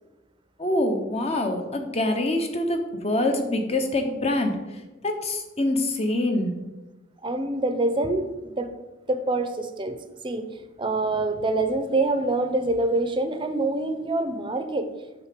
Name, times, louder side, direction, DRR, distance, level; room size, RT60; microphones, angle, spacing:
voice 1, 0.6-4.6 5.0-6.5, left 1 dB, 35° left, 4 dB, 1.1 m, -25 dB
voice 2, 7.2-8.7 9.1-10.0 10.2-10.5 10.8-14.9, right 2 dB, 25° right, 8 dB, 0.7 m, -25 dB
9.0 x 3.8 x 6.7 m, 1.1 s
head